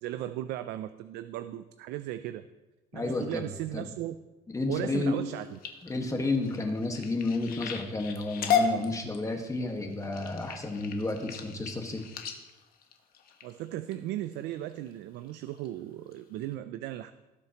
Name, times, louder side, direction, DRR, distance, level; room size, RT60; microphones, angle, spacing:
voice 1, 0.0-2.5 2.9-4.2 4.7-5.6 13.4-17.1, right 13 dB, 85° right, 11 dB, 0.4 m, -36 dB
voice 2, 2.9-3.9 4.5-5.2 5.8-12.0, left 2 dB, 20° left, 3 dB, 1.5 m, -31 dB
sound 1, 5.2-13.9 14.5-14.9 15.3-15.7 16.1-16.2 16.5-16.6, left 6 dB, 60° left, 1.3 m, -34 dB
18.0 x 7.5 x 3.0 m, 1.1 s
cardioid pair, 110°, 17 cm